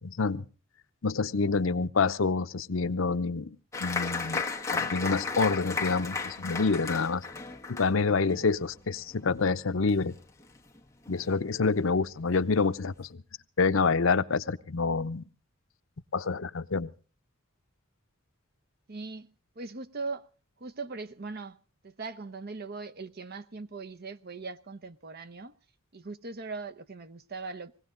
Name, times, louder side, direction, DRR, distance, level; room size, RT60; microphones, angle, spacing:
voice 1, 0.0-0.4 1.0-4.4 4.7-7.2 7.7-10.1 11.1-13.2 13.6-15.2 16.1-16.9, left 4 dB, 75° left, 0.7 m, -27 dB
Applause, 3.7-10.8 11.1-11.8 12.2-12.3 12.6-13.1, left 4 dB, 15° left, 1.4 m, -35 dB
voice 2, 18.9-20.3 20.6-21.6 21.8-25.5 25.9-27.9, right 3 dB, 50° right, 0.8 m, -40 dB
20.5 x 16.5 x 3.8 m
head